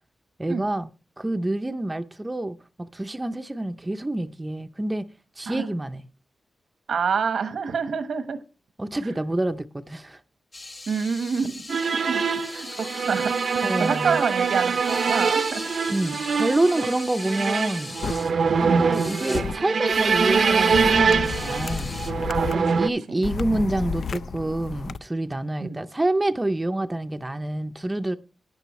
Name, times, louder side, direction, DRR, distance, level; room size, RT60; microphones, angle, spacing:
voice 1, 0.4-0.9 1.2-5.1 5.4-6.0 8.8-10.2 13.6-14.2 15.9-18.0 18.6-21.9 22.5-28.2, right 1 dB, 15° right, 0.5 m, -27 dB
voice 2, 6.9-8.4 9.0-9.1 10.9-15.6 18.5-18.8 22.3-22.9 25.6-25.8, right 6 dB, 85° right, 1.1 m, -28 dB
sound 1, 10.5-18.3 18.9-19.4 19.9-22.1, left 2 dB, 30° left, 1.2 m, -39 dB
sound 2, 11.7-22.9, right 5 dB, 65° right, 0.6 m, -24 dB
sound 3, 18.0-18.1 19.3-19.5 20.7-22.5 23.2-25.0, left 5 dB, 70° left, 0.4 m, -31 dB
12.5 x 10.0 x 3.0 m
wide cardioid pair, 135°, 0 cm